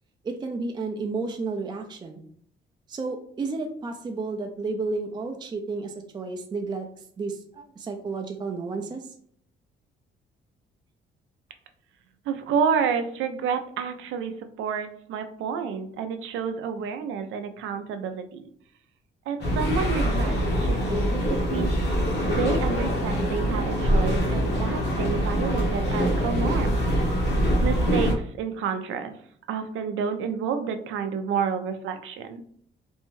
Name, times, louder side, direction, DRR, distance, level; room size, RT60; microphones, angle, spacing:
voice 1, 0.2-2.2 2.9-6.9 7.2-9.1, right 3 dB, 20° right, 4 dB, 0.4 m, -32 dB
voice 2, 12.3-14.3 14.6-18.5 19.3-20.3 20.6-21.8 22.2-26.8 27.6-29.2 29.5-32.4, right 6 dB, 80° right, 8 dB, 0.4 m, -29 dB
sound 1, 19.4-28.2, equal, 60° left, 0.8 m, -24 dB
2.6 x 2.1 x 3.0 m, 0.63 s
cardioid pair, 90°, 20 cm